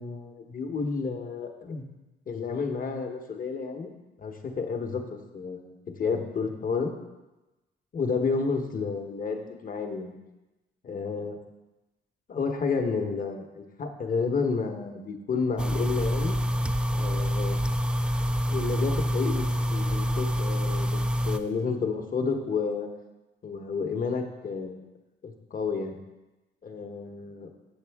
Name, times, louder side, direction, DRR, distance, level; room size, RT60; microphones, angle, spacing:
voice 1, 0.0-1.9 2.3-3.9 4.2-5.7 6.0-6.9 7.9-10.1 10.8-11.4 12.3-16.4 16.9-17.6 18.5-21.0 21.3-22.9 23.4-24.8 25.2-26.0 26.6-27.5, left 5 dB, 45° left, 4 dB, 1.0 m, -31 dB
sound 1, 15.6-21.4, equal, 5° right, 0.3 m, -26 dB
8.1 x 6.1 x 3.5 m, 1.1 s
cardioid pair, 90°, 20 cm